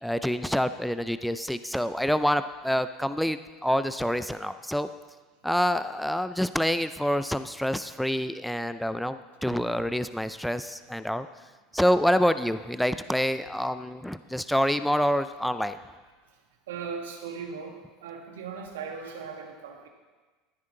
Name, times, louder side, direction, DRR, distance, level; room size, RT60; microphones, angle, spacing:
voice 1, 0.0-4.9 5.4-11.3 11.7-15.8, equal, ahead, 11 dB, 0.5 m, -27 dB
voice 2, 16.7-19.9, right 5 dB, 85° right, 2 dB, 1.7 m, -38 dB
14.5 x 9.7 x 3.9 m, 1.3 s
hypercardioid pair, 90°, 0 cm